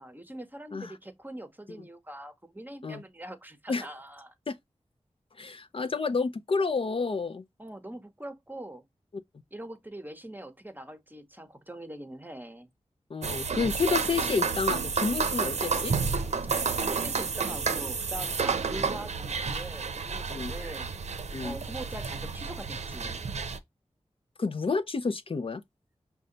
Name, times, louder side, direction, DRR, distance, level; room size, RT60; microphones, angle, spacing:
voice 1, 0.0-4.3 7.6-8.8 9.5-12.7 16.8-20.9 21.4-23.2, right 1 dB, 15° right, 0.8 m, -43 dB
voice 2, 5.4-7.4 13.1-15.9 20.3-20.5 21.3-21.6 24.4-25.6, left 4 dB, 50° left, 0.4 m, -30 dB
sound 1, 13.2-23.6, right 5 dB, 75° right, 0.6 m, -30 dB
5.4 x 2.2 x 3.8 m
wide cardioid pair, 65°, 12 cm